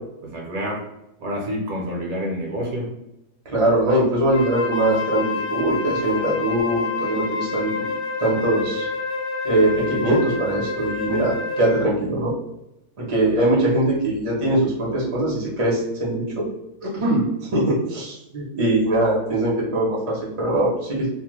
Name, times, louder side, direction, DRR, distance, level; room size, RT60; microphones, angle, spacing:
voice 1, 0.2-0.8 1.2-2.9, equal, 70° right, -1 dB, 1.1 m, -28 dB
voice 2, 3.4-7.8 8.2-8.9 9.4-12.3 13.0-16.5 16.8-21.1, right 1 dB, 30° right, -4 dB, 0.7 m, -22 dB
Wind instrument woodwind instrument, 4.3-11.9, left 4 dB, 80° left, 1.1 m, -28 dB
2.8 x 2.2 x 3.0 m, 0.88 s
omnidirectional pair, 1.7 m